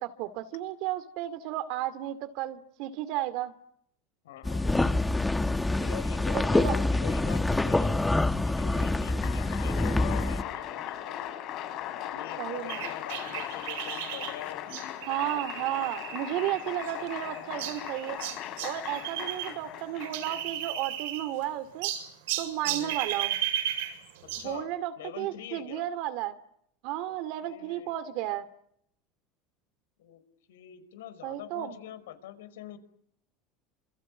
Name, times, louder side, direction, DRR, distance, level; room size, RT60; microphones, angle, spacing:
voice 1, 0.0-3.5 6.3-6.7 12.4-12.9 15.1-18.2 18.6-21.9 22.4-23.3 24.4-26.4 26.8-28.5 31.2-31.8, right 13 dB, 65° right, 11 dB, 2.3 m, -33 dB
voice 2, 4.2-4.8 5.7-11.3 11.9-14.7 22.6-23.0 24.2-25.9 27.1-27.2 27.4-28.0 30.0-30.2 30.5-32.8, left 10 dB, 90° left, 13 dB, 5.2 m, -45 dB
sound 1, 4.4-10.4, left 2 dB, 10° left, 1.6 m, -26 dB
Applause, 8.8-20.7, left 11 dB, 55° left, 6.9 m, -39 dB
sound 2, 12.7-19.5 19.8-21.4 21.8-24.5, right 12 dB, 80° right, 7.3 m, -35 dB
27.5 x 24.5 x 8.6 m, 0.71 s
supercardioid pair, 110°, 0 cm